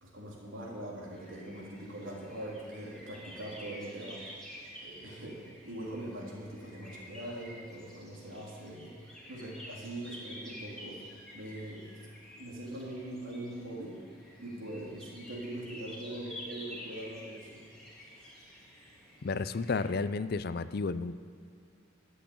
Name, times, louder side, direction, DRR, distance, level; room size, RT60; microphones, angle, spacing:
voice 1, 0.0-4.3 4.8-8.9 9.3-11.0 11.3-11.9 12.4-14.0 14.4-17.6, right 1 dB, 75° right, -4 dB, 3.3 m, -42 dB
sound 1, 1.1-19.9, equal, 5° left, 2.4 m, -50 dB
voice 2, 19.2-21.1, left 4 dB, 50° left, 14 dB, 0.4 m, -32 dB
12.5 x 8.4 x 8.6 m, 2.3 s
head